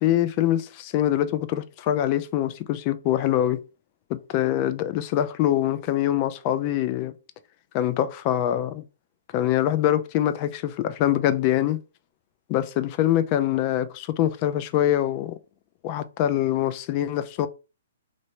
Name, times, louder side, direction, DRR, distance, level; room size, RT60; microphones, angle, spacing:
voice 1, 0.0-3.6 4.1-7.1 7.7-8.8 9.3-11.8 12.5-15.4 15.8-17.5, left 12 dB, 30° left, 0.3 m, -24 dB
3.2 x 2.6 x 3.0 m
hypercardioid pair, 155°, 0 cm